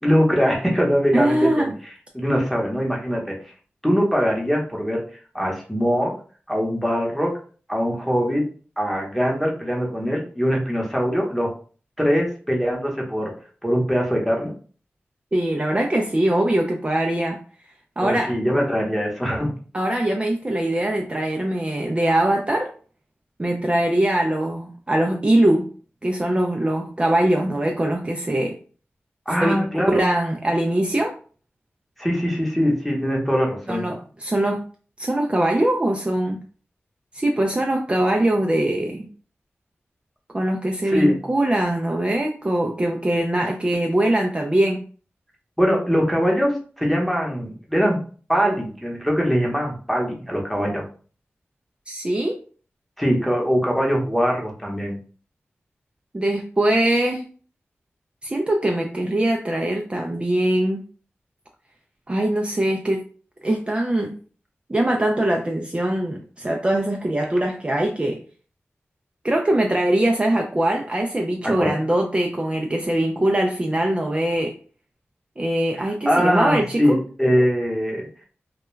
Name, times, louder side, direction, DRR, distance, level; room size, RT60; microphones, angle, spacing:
voice 1, 0.0-1.7 2.1-3.4 3.8-5.0 5.3-6.1 6.5-7.3 7.7-8.4 8.8-11.5 12.0-13.3 13.6-14.5 18.0-19.5 29.3-30.2 32.0-33.9 40.9-41.2 45.6-48.0 48.3-50.8 53.0-54.9 71.4-71.8 75.7-78.1, equal, ahead, -1 dB, 0.9 m, -22 dB
voice 2, 1.1-1.7 15.3-17.4 18.0-18.3 19.7-22.7 23.4-25.7 26.0-28.6 29.4-29.7 29.9-31.1 33.7-34.6 35.0-36.4 37.1-39.1 40.3-44.8 51.9-52.4 56.1-57.2 58.2-60.8 62.1-63.0 63.4-64.1 64.7-68.2 69.2-74.5 75.4-77.0, right 1 dB, 25° right, 1 dB, 0.4 m, -22 dB
2.2 x 2.2 x 3.0 m, 0.41 s
wide cardioid pair, 60°, 4 cm